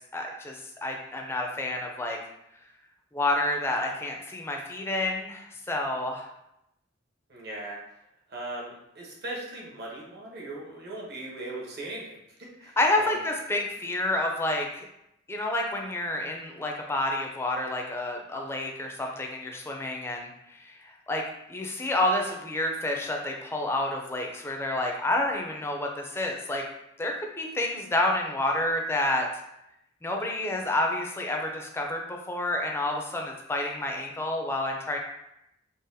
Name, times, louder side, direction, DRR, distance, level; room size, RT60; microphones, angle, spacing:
voice 1, 0.1-2.2 3.1-6.3 12.8-14.9 15.3-20.3 21.1-21.2 21.5-26.6 27.0-29.3 30.0-35.0, left 1 dB, 15° left, 1 dB, 0.4 m, -29 dB
voice 2, 7.3-7.8 8.3-13.2, right 2 dB, 55° right, -3 dB, 0.8 m, -39 dB
3.9 x 2.1 x 2.6 m, 0.83 s
head